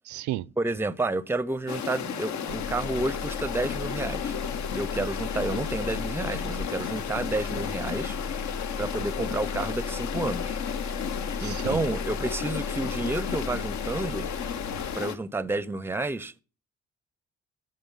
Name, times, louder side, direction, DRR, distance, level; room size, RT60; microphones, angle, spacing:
voice 1, 0.1-0.5 11.4-11.8, right 15 dB, 75° right, 0.5 m, -33 dB
voice 2, 0.6-4.3 4.7-8.4 8.8-10.6 11.4-14.3 14.9-16.4, right 2 dB, 10° right, 0.5 m, -30 dB
sound 1, 1.7-15.2, left 8 dB, 70° left, 0.9 m, -33 dB
sound 2, 2.5-15.0, left 3 dB, 90° left, 1.6 m, -37 dB
13.0 x 7.6 x 5.5 m
cardioid pair, 90°, 30 cm